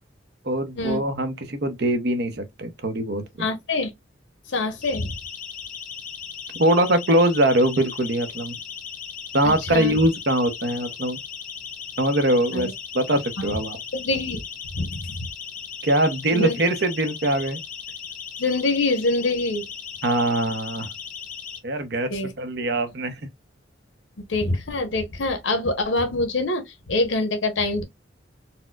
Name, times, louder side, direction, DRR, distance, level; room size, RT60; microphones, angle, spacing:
voice 1, 0.4-3.2 6.6-8.6 9.3-11.2 12.0-13.8 15.8-17.6 20.0-20.9 21.6-22.1 22.4-23.2, right 1 dB, 55° right, 0.7 m, -22 dB
voice 2, 3.4-3.9 4.5-5.2 9.4-10.0 12.5-12.7 13.4-13.6 13.9-14.4 14.7-15.3 16.3-16.6 18.4-19.7 22.1-22.3 24.2-27.8, left 2 dB, 75° left, 0.9 m, -25 dB
Siren, 4.8-21.6, left 7 dB, 45° left, 0.6 m, -37 dB
4.2 x 2.1 x 2.2 m
head